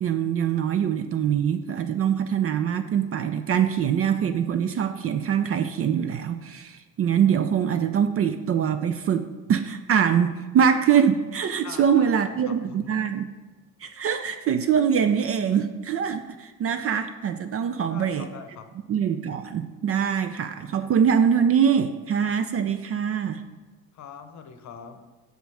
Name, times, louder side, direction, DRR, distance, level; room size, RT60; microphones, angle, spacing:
voice 1, 0.0-13.3 13.8-18.3 18.9-23.4, right 8 dB, 35° right, 10 dB, 0.4 m, -23 dB
voice 2, 11.6-13.1 17.8-18.7 23.9-25.0, left 6 dB, 45° left, 9 dB, 0.8 m, -43 dB
6.3 x 5.1 x 4.9 m, 1.3 s
hypercardioid pair, 75°, 41 cm